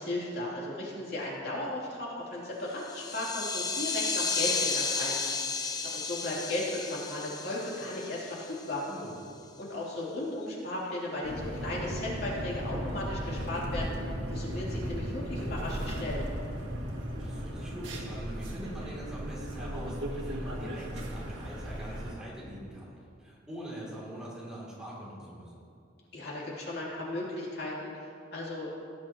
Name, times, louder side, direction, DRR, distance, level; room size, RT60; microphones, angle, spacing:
voice 1, 0.0-5.2 5.8-8.8 9.6-13.9 14.3-16.2 26.1-28.8, left 1 dB, 55° left, -6 dB, 3.1 m, -36 dB
sound 1, 2.8-8.8, left 4 dB, 20° left, 0.7 m, -33 dB
voice 2, 8.8-9.2 16.8-16.9 17.2-25.5, equal, 5° right, -7 dB, 2.9 m, -43 dB
sound 2, 11.2-22.1, equal, 85° right, 1.7 m, -36 dB
18.5 x 10.5 x 3.0 m, 2.4 s
head